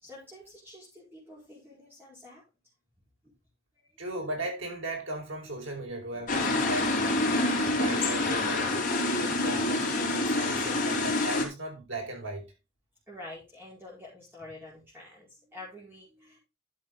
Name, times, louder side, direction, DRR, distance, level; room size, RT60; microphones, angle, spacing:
voice 1, 0.0-2.4 3.7-3.9 13.1-16.4, left 2 dB, 10° right, 4.7 m, -47 dB
voice 2, 4.0-8.9 9.1-12.5, right 1 dB, 75° right, 4.7 m, -37 dB
sound 1, 6.3-11.5, left 2 dB, 40° left, 3.1 m, -27 dB
11.5 x 7.4 x 3.8 m
head